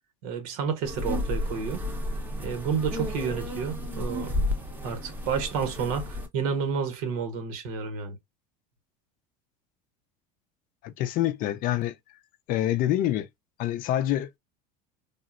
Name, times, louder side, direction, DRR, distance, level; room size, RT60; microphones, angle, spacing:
voice 1, 0.2-1.8 2.4-4.4 4.8-8.2, right 6 dB, 80° right, 1.0 m, -30 dB
sound 1, 0.8-6.3, left 1 dB, 10° right, 0.6 m, -32 dB
voice 2, 10.8-11.9 12.5-13.3 13.6-14.4, left 13 dB, 50° left, 0.4 m, -26 dB
3.6 x 2.0 x 2.4 m
supercardioid pair, 125°, 18 cm